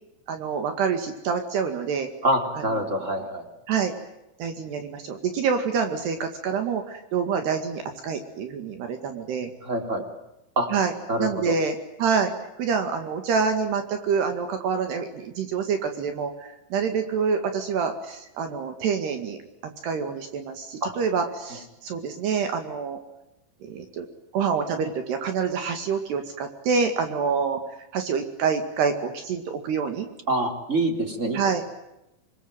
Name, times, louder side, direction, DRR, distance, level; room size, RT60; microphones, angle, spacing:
voice 1, 0.3-2.1 2.5-3.3 3.7-3.9 4.4-9.5 10.7-12.3 12.6-19.4 19.6-23.0 23.6-24.1 24.3-27.6 27.9-30.1 31.3-31.6, right 6 dB, 65° right, 6 dB, 4.1 m, -27 dB
voice 2, 2.2-3.4 9.6-10.0 10.5-10.7 11.1-11.5 20.8-20.9 30.3-31.6, right 1 dB, 15° right, 5 dB, 3.4 m, -25 dB
27.0 x 22.5 x 9.1 m, 0.88 s
omnidirectional pair, 5.4 m